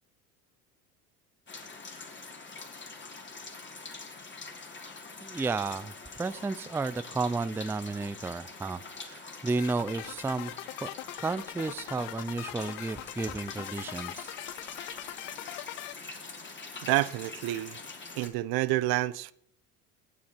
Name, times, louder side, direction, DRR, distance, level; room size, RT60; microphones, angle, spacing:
sound 1, 1.5-18.3, left 3 dB, 25° left, 3.1 m, -45 dB
voice 1, 5.2-5.9 6.2-10.5 10.8-10.9 11.2-14.3, right 3 dB, 5° right, 0.5 m, -32 dB
sound 2, 9.6-15.9, left 20 dB, 50° left, 0.5 m, -42 dB
voice 2, 16.8-17.8 18.1-19.3, right 17 dB, 50° right, 0.8 m, -28 dB
24.0 x 8.5 x 4.4 m
hypercardioid pair, 80°, 46 cm